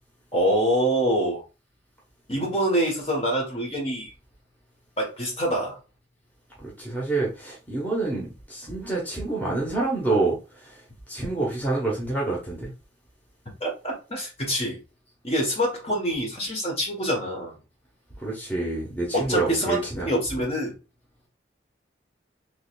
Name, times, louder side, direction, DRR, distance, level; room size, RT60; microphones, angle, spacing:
voice 1, 0.3-1.4 2.3-4.1 5.0-5.8 13.6-14.8 15.2-17.5 19.1-19.8 20.0-20.7, equal, 35° left, 1.4 m, -25 dB
voice 2, 6.6-10.8 11.1-12.7 18.2-20.1, right 2 dB, 10° left, 1.1 m, -27 dB
3.9 x 3.2 x 2.4 m
head